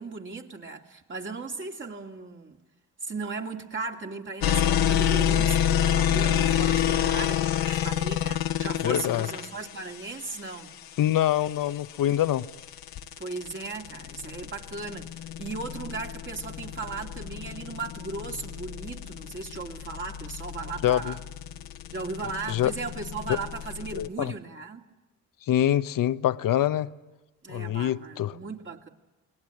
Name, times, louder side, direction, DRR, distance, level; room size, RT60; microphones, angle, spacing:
voice 1, 0.0-2.6 3.0-10.8 13.2-15.1 15.4-21.2 21.9-24.9 27.4-28.9, right 4 dB, 35° right, 2.8 m, -37 dB
sound 1, 4.4-24.1, left 10 dB, 80° left, 1.6 m, -28 dB
voice 2, 8.8-9.3 11.0-12.5 20.8-21.1 22.5-22.7 23.9-24.3 25.5-26.9 27.5-28.4, left 12 dB, 65° left, 1.0 m, -25 dB
28.5 x 20.5 x 10.0 m
cardioid pair, 95°, 35 cm